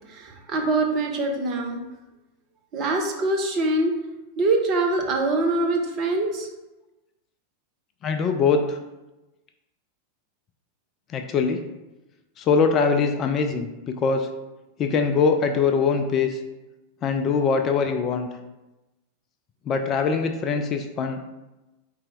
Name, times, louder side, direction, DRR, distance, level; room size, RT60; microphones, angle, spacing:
voice 1, 0.1-1.8 2.7-4.0 4.4-6.5, right 2 dB, 35° right, 2 dB, 0.8 m, -24 dB
voice 2, 8.0-8.8 11.1-11.6 12.4-14.3 14.8-16.4 17.0-18.3 19.7-21.2, left 5 dB, 30° left, 5 dB, 0.4 m, -22 dB
4.3 x 3.3 x 3.7 m, 1.0 s
figure-of-eight pair, 90°, 0 cm